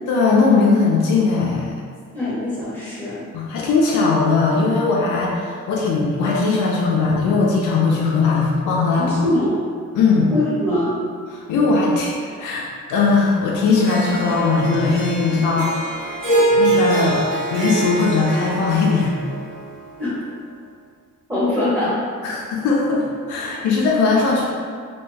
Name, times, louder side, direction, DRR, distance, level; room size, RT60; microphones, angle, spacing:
voice 1, 0.1-1.8 3.3-9.2 9.9-10.3 11.3-16.1 16.5-19.2 22.2-24.5, left 4 dB, 80° left, -3 dB, 0.5 m, -19 dB
voice 2, 2.1-3.2 8.9-9.6 10.3-10.9 20.0-20.1 21.3-21.9, left 1 dB, 5° right, -11 dB, 0.9 m, -22 dB
Harp, 13.7-20.0, right 2 dB, 85° right, 0.9 m, -23 dB
2.4 x 2.2 x 3.2 m, 2.1 s
cardioid pair, 90°, 30 cm